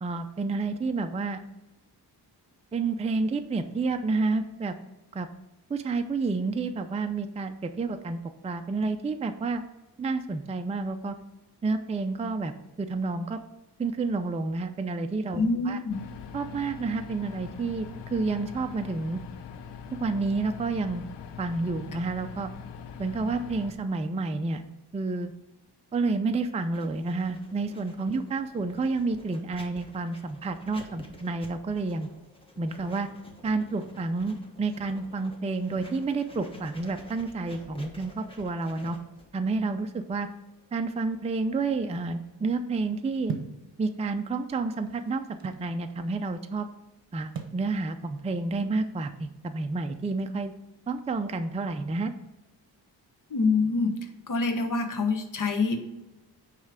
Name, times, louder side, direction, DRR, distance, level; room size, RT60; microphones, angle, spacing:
voice 1, 0.0-1.4 2.7-4.8 5.1-5.3 5.7-9.6 10.0-11.2 11.6-12.5 12.8-13.4 13.8-15.8 16.3-19.2 20.0-21.1 21.4-22.5 23.0-24.6 24.9-25.3 25.9-32.1 32.6-33.1 33.4-39.0 39.3-40.3 40.7-43.4 43.8-46.7 47.1-50.5 50.9-52.1, right 3 dB, 15° right, 7 dB, 0.4 m, -30 dB
voice 2, 15.3-16.0 53.3-53.9 54.3-55.8, left 3 dB, 50° left, 5 dB, 1.2 m, -25 dB
sound 1, 15.9-23.7, left 7 dB, 85° left, 0.7 m, -42 dB
Writing, 26.7-41.5, left 1 dB, 15° left, 1.3 m, -50 dB
sound 2, 43.3-43.6 44.5-45.7 47.3-47.6, right 6 dB, 55° right, 1.0 m, -36 dB
9.3 x 3.2 x 5.0 m, 1.0 s
cardioid pair, 105°, 41 cm